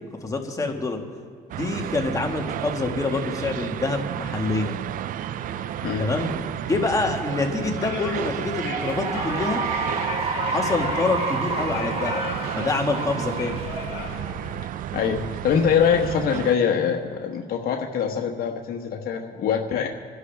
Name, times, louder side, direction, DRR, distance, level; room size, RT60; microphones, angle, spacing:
voice 1, 0.2-1.0 1.6-4.8 6.0-9.6 10.5-12.2 12.5-13.6, left 3 dB, 20° left, 2 dB, 1.8 m, -26 dB
sound 1, 1.5-16.6, right 11 dB, 55° right, 0.4 m, -32 dB
sound 2, 5.2-14.6, left 6 dB, 90° left, 1.3 m, -38 dB
voice 2, 5.8-6.1 14.9-19.9, left 7 dB, 60° left, 1 dB, 1.3 m, -23 dB
Cheering / Applause, 8.3-15.0, right 4 dB, 35° right, 1.7 m, -30 dB
26.0 x 11.0 x 3.5 m, 2.2 s
cardioid pair, 110°, 17 cm